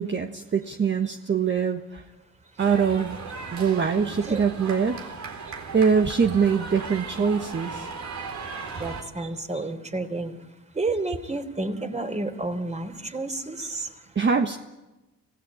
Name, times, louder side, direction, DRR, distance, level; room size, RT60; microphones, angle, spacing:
voice 1, 0.0-2.0 2.6-3.2 3.5-5.0 5.4-7.9 14.1-14.6, right 6 dB, 40° right, 5 dB, 1.5 m, -23 dB
sound 1, 2.6-9.0, right 4 dB, 65° right, 4.0 m, -37 dB
voice 2, 8.8-10.3 10.7-13.9, right 2 dB, 25° right, 7 dB, 3.6 m, -30 dB
26.0 x 17.0 x 8.7 m, 1.0 s
cardioid pair, 90°, 30 cm